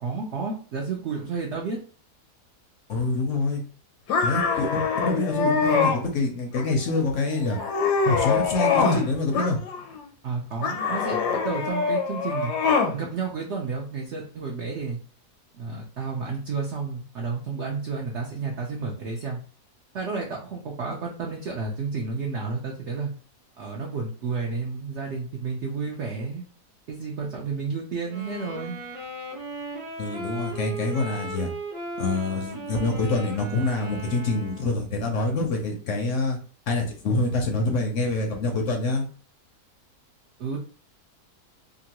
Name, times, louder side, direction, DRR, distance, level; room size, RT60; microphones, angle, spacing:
voice 1, 0.0-1.8 10.2-12.5 12.9-15.0 15.5-19.4 19.9-23.1 23.6-26.4 26.9-28.8 40.4-40.6, right 4 dB, 70° right, 0 dB, 0.6 m, -31 dB
voice 2, 2.9-3.6 4.2-7.6 8.1-9.6 30.0-31.5 32.0-36.4 36.7-39.0, left 2 dB, 65° left, 2 dB, 0.8 m, -26 dB
sound 1, 4.1-6.0 6.5-7.0 7.4-9.0 9.3-10.0 10.6-12.9, left 5 dB, 85° left, 1.3 m, -24 dB
sound 2, 28.0-34.9, right 2 dB, 30° right, 0.7 m, -37 dB
3.0 x 2.4 x 2.8 m, 0.41 s
omnidirectional pair, 1.7 m